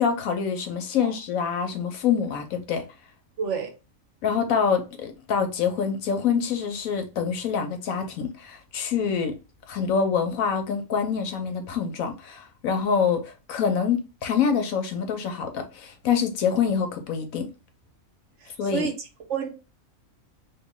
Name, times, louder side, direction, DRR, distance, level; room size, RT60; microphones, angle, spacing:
voice 1, 0.0-2.8 4.2-9.4 9.7-17.5 18.6-18.9, left 6 dB, 80° left, 1.1 m, -26 dB
voice 2, 3.4-3.7 18.4-19.5, right 6 dB, 60° right, 1.1 m, -30 dB
3.1 x 2.6 x 3.6 m
omnidirectional pair, 1.4 m